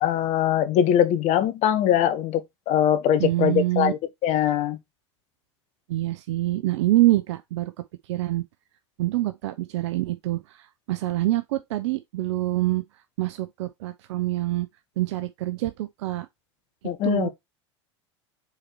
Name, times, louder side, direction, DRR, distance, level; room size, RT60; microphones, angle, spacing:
voice 1, 0.0-4.8 16.8-17.3, left 10 dB, 50° left, 1.2 m, -22 dB
voice 2, 3.2-3.9 5.9-7.7 8.1-8.4 9.0-12.8 13.2-14.7 15.0-16.3 17.0-17.3, right 16 dB, 70° right, 0.6 m, -25 dB
4.9 x 4.3 x 4.5 m
hypercardioid pair, 90°, 15 cm